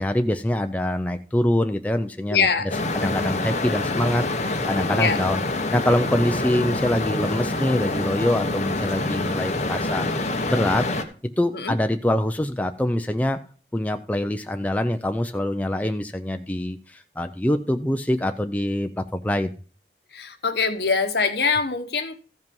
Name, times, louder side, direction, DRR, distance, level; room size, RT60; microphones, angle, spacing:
voice 1, 0.0-2.5 2.9-5.4 5.7-10.1 10.5-10.9 11.4-13.4 13.7-19.5, left 1 dB, 10° left, 6 dB, 0.4 m, -24 dB
voice 2, 2.3-2.7 4.9-5.2 11.5-11.7 20.1-22.2, left 5 dB, 65° left, 7 dB, 1.2 m, -23 dB
sound 1, 2.7-11.0, left 2 dB, 40° left, 1.1 m, -26 dB
14.5 x 5.4 x 5.3 m, 0.40 s
head